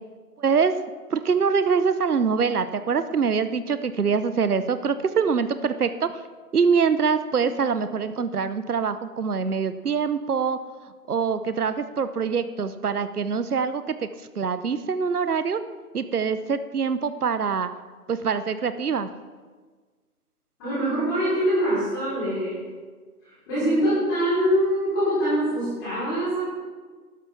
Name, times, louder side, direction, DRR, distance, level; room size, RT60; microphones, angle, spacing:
voice 1, 0.4-0.7 1.1-6.1 6.5-10.6 11.1-14.0 14.4-15.6 15.9-17.7 18.1-19.1, right 5 dB, 70° right, 12 dB, 0.9 m, -24 dB
voice 2, 20.6-22.6 23.5-26.4, equal, 15° left, -14 dB, 5.2 m, -23 dB
13.0 x 11.0 x 5.8 m, 1.4 s
figure-of-eight pair, 165°, 47 cm